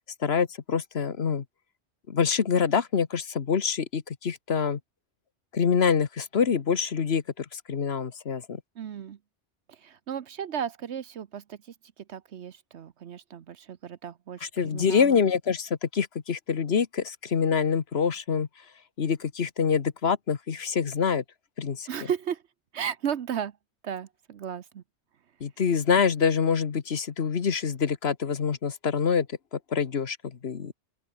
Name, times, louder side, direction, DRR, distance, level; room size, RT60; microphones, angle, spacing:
voice 1, 0.2-1.4 2.1-4.8 5.5-8.6 14.4-18.5 19.0-21.2 21.6-21.9 25.4-30.7, left 6 dB, 60° left, 1.4 m, -26 dB
voice 2, 8.8-9.2 9.7-15.2 21.9-22.4 22.7-23.6 23.8-24.8, right 8 dB, 70° right, 1.1 m, -35 dB
open air
omnidirectional pair, 1.2 m